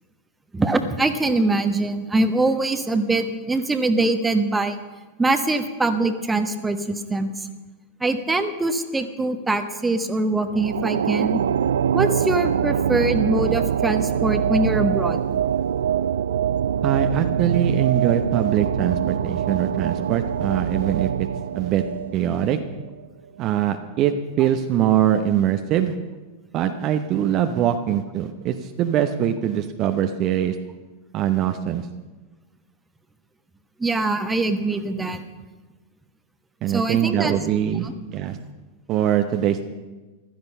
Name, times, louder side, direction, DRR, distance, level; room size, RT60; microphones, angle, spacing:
voice 1, 0.5-4.8 5.2-7.5 8.0-11.4 11.9-15.2 33.8-35.2 36.7-37.4 37.8-37.9, right 2 dB, 10° right, 9 dB, 1.2 m, -23 dB
sound 1, 10.5-23.1, right 8 dB, 65° right, 0.4 m, -24 dB
voice 2, 16.8-21.3 21.5-21.8 22.1-22.6 23.4-25.9 26.5-30.6 31.1-31.9 36.6-38.4 38.9-39.7, right 10 dB, 35° right, 7 dB, 0.8 m, -22 dB
15.0 x 12.5 x 5.6 m, 1.2 s
figure-of-eight pair, 90°, 0 cm